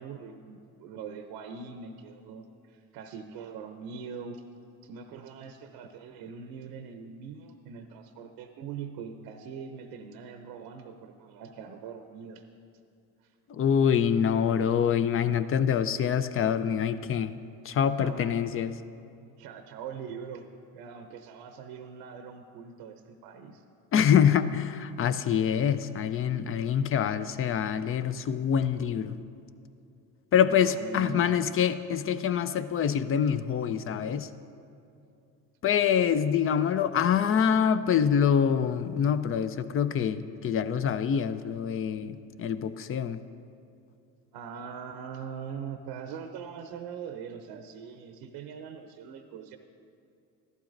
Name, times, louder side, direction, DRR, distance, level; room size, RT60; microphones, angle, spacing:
voice 1, 0.0-4.4 4.8-12.4 13.2-13.3 18.0-18.6 19.4-20.5 20.7-23.6 30.4-31.3 44.3-49.6, right 6 dB, 70° right, 7 dB, 0.7 m, -42 dB
voice 2, 13.5-17.3 17.6-18.7 23.9-29.2 30.3-34.3 35.6-43.2, left 8 dB, 35° left, 13 dB, 0.5 m, -25 dB
14.0 x 12.0 x 2.6 m, 2.6 s
supercardioid pair, 85°, 39 cm